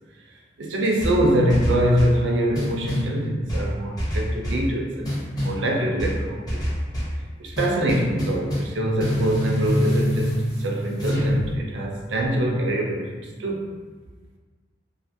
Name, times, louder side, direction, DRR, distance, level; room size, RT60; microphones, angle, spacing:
voice 1, 0.6-5.1 5.4-6.6 7.4-13.7, right 1 dB, 85° right, 0 dB, 0.5 m, -24 dB
sound 1, 1.0-2.2 2.5-3.1 3.5-4.7 5.0-5.6 6.0-7.2 7.6-11.5, equal, 20° left, 0.6 m, -26 dB
2.8 x 2.4 x 2.6 m, 1.4 s
head